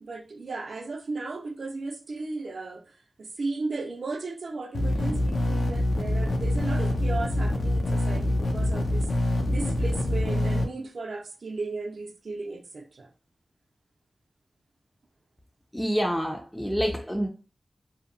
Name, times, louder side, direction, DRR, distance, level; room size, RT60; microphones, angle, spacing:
voice 1, 0.0-13.1, right 3 dB, 75° right, 0.5 m, -35 dB
sound 1, 4.7-10.6, left 1 dB, 75° left, 0.4 m, -25 dB
voice 2, 15.7-17.3, equal, 10° left, 0.4 m, -27 dB
2.7 x 2.1 x 2.6 m
wide cardioid pair, 65°, 0 cm